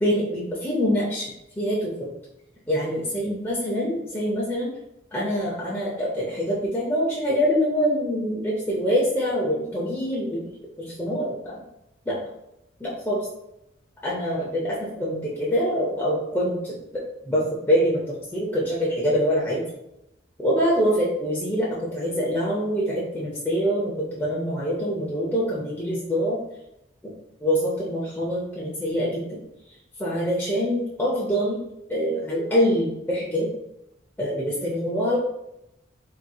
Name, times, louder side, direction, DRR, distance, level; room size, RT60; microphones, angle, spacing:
voice 1, 0.0-2.1 2.7-4.7 5.1-10.5 10.8-11.6 12.1-12.2 12.8-13.3 14.0-16.7 17.2-19.6 20.4-26.4 27.0-27.1 27.4-29.4 30.0-31.6 31.9-33.5 34.2-35.2, equal, 10° left, -7 dB, 0.5 m, -25 dB
3.7 x 2.9 x 2.2 m, 0.86 s
head